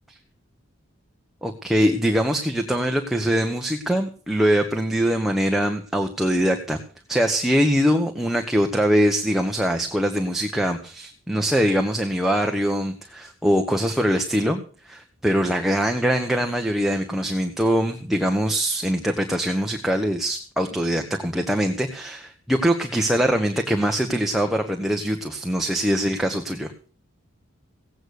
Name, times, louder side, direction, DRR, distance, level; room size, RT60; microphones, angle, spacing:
voice 1, 1.4-6.8 7.1-14.6 14.9-26.7, equal, ahead, 3 dB, 1.0 m, -23 dB
16.5 x 9.0 x 6.5 m, 0.41 s
head